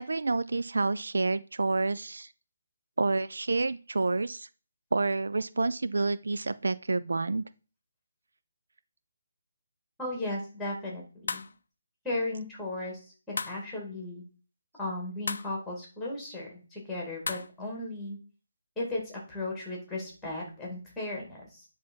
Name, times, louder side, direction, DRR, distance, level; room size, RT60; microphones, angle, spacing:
voice 1, 0.0-2.3 3.0-4.5 4.9-7.4, right 3 dB, 85° right, 14 dB, 0.5 m, -28 dB
voice 2, 10.0-11.4 12.0-13.0 13.3-14.2 14.8-18.2 18.8-21.6, left 2 dB, 5° left, -1 dB, 2.4 m, -36 dB
Magnet attracts coins, 11.3-11.6 13.4-13.7 15.3-15.5 17.2-17.5, left 4 dB, 65° left, 0.5 m, -34 dB
10.5 x 3.5 x 4.5 m, 0.36 s
hypercardioid pair, 165°, 0 cm